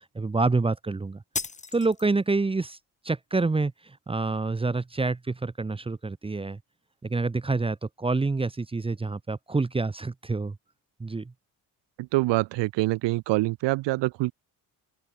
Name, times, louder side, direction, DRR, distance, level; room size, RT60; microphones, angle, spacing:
voice 1, 0.2-1.2 1.7-2.8 3.0-6.6 7.0-10.6 11.0-11.3, right 3 dB, 15° right, 1.7 m, -27 dB
sound 1, 1.3-2.4, left 4 dB, 15° left, 2.1 m, -35 dB
voice 2, 12.0-14.3, right 20 dB, 90° right, 1.0 m, -25 dB
open air
cardioid pair, 165°, 42 cm